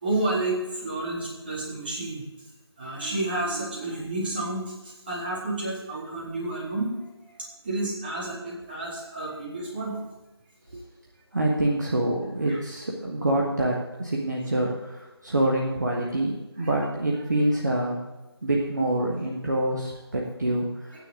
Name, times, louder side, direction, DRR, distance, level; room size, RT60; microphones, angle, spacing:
voice 1, 0.0-2.3 2.8-6.9 7.6-10.1 12.5-12.6 16.6-16.7, right 2 dB, 20° right, -5 dB, 2.3 m, -30 dB
voice 2, 11.3-18.0 18.4-21.1, right 1 dB, 40° right, -2 dB, 1.3 m, -26 dB
15.5 x 9.3 x 3.7 m, 1.0 s
figure-of-eight pair, 165°, 14 cm